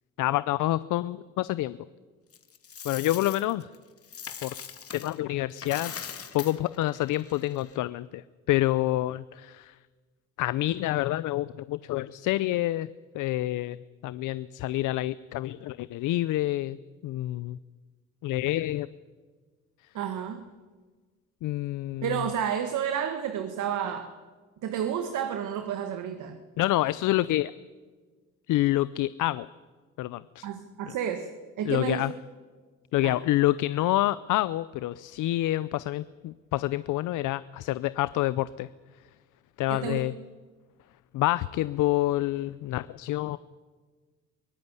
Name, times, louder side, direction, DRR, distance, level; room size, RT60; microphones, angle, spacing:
voice 1, 0.2-1.8 2.8-3.7 4.4-4.5 4.9-5.9 6.3-8.2 8.5-9.7 10.4-12.9 13.1-13.8 14.0-16.8 17.0-17.6 18.2-18.9 21.4-22.1 26.6-27.5 28.5-29.5 30.0-30.5 31.6-32.1 32.9-38.7 39.6-40.1 41.1-43.4, left 16 dB, 85° left, 17 dB, 0.6 m, -27 dB
Coin (dropping), 2.3-5.2 5.5-7.8, left 7 dB, 50° left, 2.2 m, -41 dB
voice 2, 19.9-20.4 22.0-24.1 24.6-26.4 30.4-31.3 31.6-32.1 33.0-33.2 39.7-40.0, right 9 dB, 80° right, 8 dB, 1.7 m, -31 dB
23.0 x 17.5 x 9.6 m, 1.4 s
cardioid pair, 90°, 30 cm